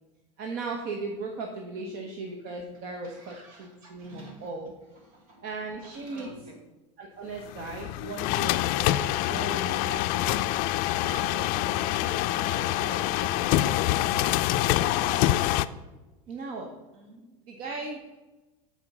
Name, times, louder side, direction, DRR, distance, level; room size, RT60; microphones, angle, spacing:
voice 1, 0.4-4.7 5.4-6.3 7.0-10.4 11.0-14.4 15.0-15.2 16.3-16.7 17.5-18.2, right 3 dB, 60° right, 2 dB, 1.1 m, -38 dB
voice 2, 3.0-4.6 4.9-6.7 7.8-8.0 13.1-13.6 16.9-17.3, right 1 dB, 75° right, 1 dB, 2.5 m, -51 dB
sound 1, 7.5-15.7, left 15 dB, 55° left, 0.4 m, -26 dB
8.6 x 4.5 x 6.1 m, 1.1 s
hypercardioid pair, 95°, 17 cm